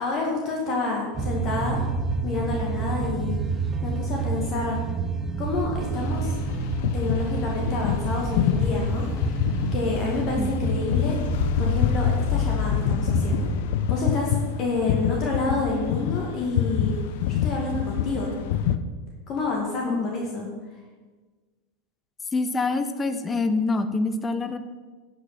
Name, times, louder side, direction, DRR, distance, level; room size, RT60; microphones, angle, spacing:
voice 1, 0.0-1.9 2.2-3.4 3.8-4.8 5.4-6.3 6.9-9.1 9.7-11.2 11.6-13.5 13.9-17.0 17.3-18.3 19.3-20.5, left 3 dB, 45° left, 0 dB, 1.9 m, -28 dB
sound 1, 1.1-13.6, right 3 dB, 25° right, 1.3 m, -29 dB
sound 2, 5.9-18.8, left 9 dB, 60° left, 0.6 m, -27 dB
voice 2, 22.3-24.6, left 3 dB, 20° left, 10 dB, 0.8 m, -26 dB
11.0 x 5.4 x 5.8 m, 1.3 s
figure-of-eight pair, 85°, 0 cm